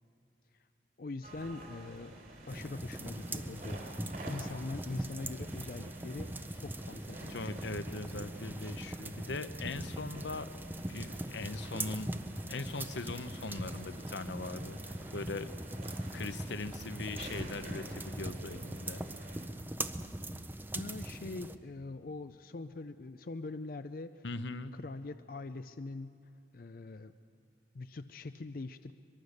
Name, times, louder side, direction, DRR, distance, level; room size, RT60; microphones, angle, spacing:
voice 1, 1.0-2.2 2.5-3.9 4.3-7.5 20.7-24.2 24.7-26.2 26.5-27.1 27.7-28.9, left 3 dB, 50° left, 10 dB, 0.5 m, -43 dB
sound 1, 1.2-19.5, right 1 dB, 50° right, 3.9 m, -50 dB
sound 2, 2.5-21.6, right 1 dB, 10° right, 0.6 m, -41 dB
voice 2, 7.3-10.5 10.9-12.1 12.5-15.5 16.1-19.4 24.2-24.7, left 3 dB, 80° left, 11 dB, 0.8 m, -40 dB
23.0 x 23.0 x 6.6 m, 2.6 s
head